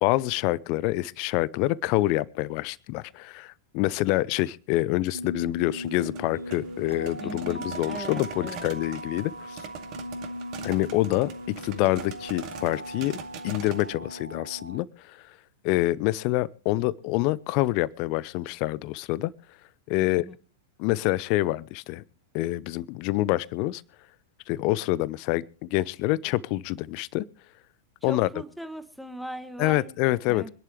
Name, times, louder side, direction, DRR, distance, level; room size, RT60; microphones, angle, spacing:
voice 1, 0.0-9.6 10.6-11.3 11.6-13.2 13.4-15.2 15.6-19.3 19.9-20.3 20.8-22.0 22.3-23.8 24.5-27.2 28.0-28.3 29.6-30.5, left 18 dB, 45° left, 23 dB, 0.6 m, -26 dB
sound 1, 5.1-14.8, equal, 90° right, 0.6 m, -38 dB
sound 2, 5.7-13.9, right 8 dB, 40° right, 2.2 m, -43 dB
voice 2, 7.2-8.7 20.0-20.4 28.0-29.9 30.3-30.5, equal, ahead, 10 dB, 1.6 m, -39 dB
25.0 x 11.0 x 3.1 m, 0.38 s
figure-of-eight pair, 95°, 0 cm